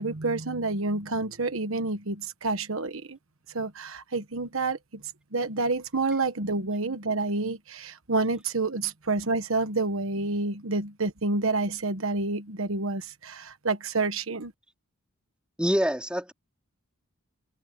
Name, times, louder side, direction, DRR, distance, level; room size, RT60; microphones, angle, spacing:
voice 1, 0.0-3.2 3.5-5.0 5.3-14.5, right 3 dB, 65° right, 1.3 m, -29 dB
voice 2, 15.6-16.3, equal, 5° right, 2.6 m, -25 dB
open air
head